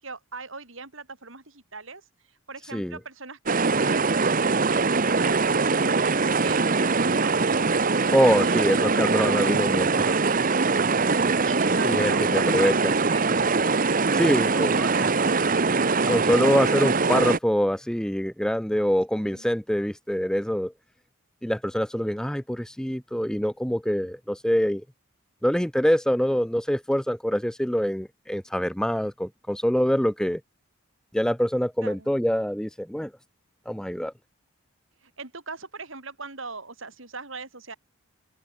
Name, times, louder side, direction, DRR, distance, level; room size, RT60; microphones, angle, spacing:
voice 1, 0.0-7.4 8.4-9.0 10.1-10.6 11.4-13.5 14.6-15.4 19.1-19.5 31.8-32.1 35.0-37.7, right 4 dB, 65° right, 4.4 m, -40 dB
sound 1, 3.5-17.4, right 4 dB, 40° right, 1.0 m, -22 dB
voice 2, 8.1-10.2 11.8-12.8 14.1-14.7 16.1-20.7 21.4-24.8 25.4-30.4 31.1-33.1 33.7-34.1, equal, 5° left, 0.7 m, -25 dB
open air
head